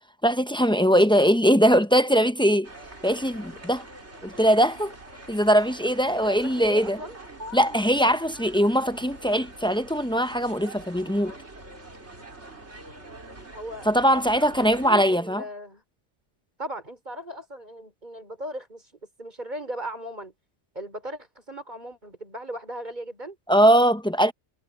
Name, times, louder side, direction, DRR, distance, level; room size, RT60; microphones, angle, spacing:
voice 1, 0.2-2.7 3.0-3.8 4.2-4.9 5.3-7.0 7.5-11.3 13.9-15.4 23.5-24.3, equal, 5° left, 0.4 m, -21 dB
sound 1, 2.6-14.9, right 2 dB, 60° right, 5.0 m, -44 dB
voice 2, 6.1-7.2 13.5-15.8 16.6-18.9 19.2-20.3 20.7-23.4, right 1 dB, 35° right, 4.5 m, -38 dB
omnidirectional pair, 1.3 m